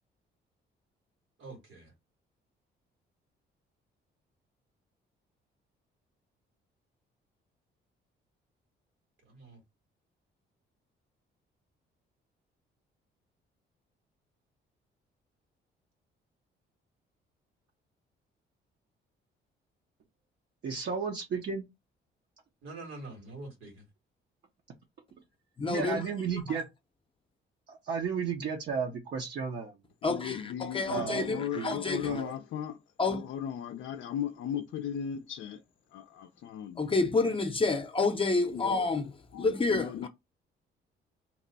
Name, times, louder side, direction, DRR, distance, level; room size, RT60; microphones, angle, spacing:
voice 1, 1.4-1.9 9.2-9.6 22.6-23.9, right 2 dB, 85° right, 1.7 m, -45 dB
voice 2, 20.6-21.7 25.7-26.7 27.7-29.7 30.9-31.3 31.5-31.8 32.0-32.3, right 6 dB, 60° right, 0.7 m, -33 dB
voice 3, 25.6-26.0 30.0-32.1 33.0-33.2 36.8-39.1 39.4-40.1, left 3 dB, 25° left, 0.6 m, -29 dB
voice 4, 30.0-32.8 33.1-35.6 35.9-36.9 38.5-39.0 39.3-40.1, left 9 dB, 70° left, 0.4 m, -37 dB
2.9 x 2.2 x 3.9 m
cardioid pair, 90°, 20 cm